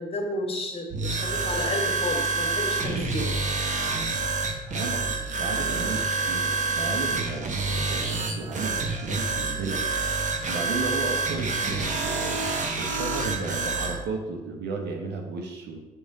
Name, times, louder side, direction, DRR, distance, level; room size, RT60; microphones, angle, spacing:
voice 1, 0.0-3.3, left 1 dB, 30° left, 2 dB, 1.8 m, -32 dB
sound 1, 0.9-14.0, right 3 dB, 40° right, 1.2 m, -27 dB
voice 2, 4.6-9.8 10.5-15.8, right 3 dB, 65° right, 2 dB, 1.2 m, -34 dB
6.8 x 5.3 x 4.0 m, 1.0 s
hypercardioid pair, 60°, 19 cm